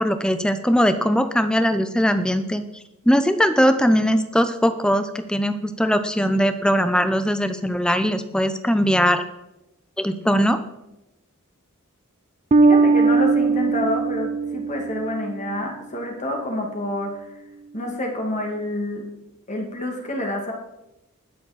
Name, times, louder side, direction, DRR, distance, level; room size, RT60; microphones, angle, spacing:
voice 1, 0.0-2.6 3.1-9.2 10.0-10.6, equal, 5° left, 10 dB, 0.7 m, -20 dB
Bass guitar, 12.5-15.5, right 4 dB, 30° right, 0.3 m, -19 dB
voice 2, 12.6-17.2 17.7-19.0 19.5-20.5, left 1 dB, 30° left, 1 dB, 2.0 m, -28 dB
21.0 x 7.2 x 4.2 m, 0.91 s
head